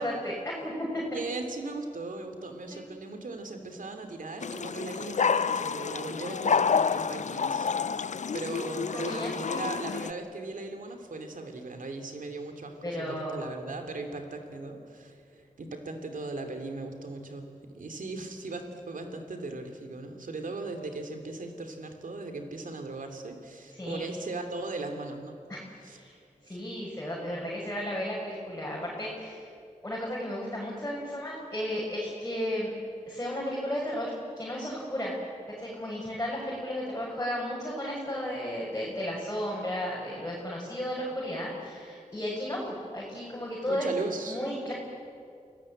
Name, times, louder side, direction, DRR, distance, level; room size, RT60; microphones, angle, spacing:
voice 1, 0.0-1.0 2.7-2.8 8.9-9.3 12.8-13.5 23.7-24.1 25.5-25.6 25.9-26.1 26.5-29.5 29.8-32.7 33.1-35.2 35.6-43.9 44.3-44.7, equal, 20° left, -5 dB, 6.8 m, -34 dB
voice 2, 1.1-7.7 8.3-25.4 25.8-26.0 26.5-26.6 43.7-44.4, right 3 dB, 85° right, 5 dB, 3.0 m, -38 dB
sound 1, 4.4-10.1, left 6 dB, 65° left, 0.6 m, -29 dB
29.0 x 17.5 x 8.8 m, 2.4 s
wide cardioid pair, 60°, 13 cm